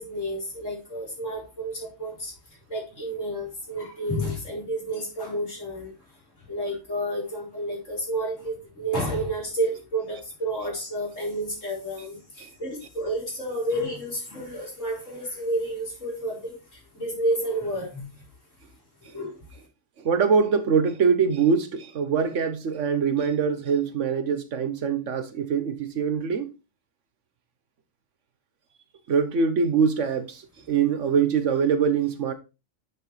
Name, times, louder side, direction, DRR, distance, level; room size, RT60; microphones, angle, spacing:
voice 1, 0.0-2.3 2.7-5.9 6.5-16.6 16.9-18.1 19.1-19.4, right 1 dB, 75° left, 4.8 m, -30 dB
voice 2, 20.0-26.5 29.1-30.4 30.7-32.3, right 6 dB, 70° right, 1.3 m, -23 dB
9.4 x 6.1 x 3.3 m
omnidirectional pair, 1.3 m